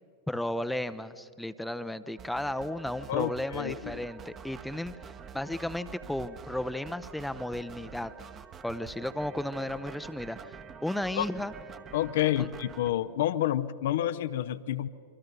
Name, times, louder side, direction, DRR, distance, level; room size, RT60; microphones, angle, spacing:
voice 1, 0.3-8.1 8.6-11.5 12.4-12.5, left 1 dB, 5° left, 12 dB, 0.7 m, -34 dB
sound 1, 2.2-12.9, right 6 dB, 25° right, 1.1 m, -47 dB
voice 2, 3.1-4.0 11.2-11.3 11.9-14.9, left 12 dB, 55° left, 12 dB, 0.7 m, -29 dB
26.5 x 24.0 x 5.3 m, 2.4 s
figure-of-eight pair, 90°, 0 cm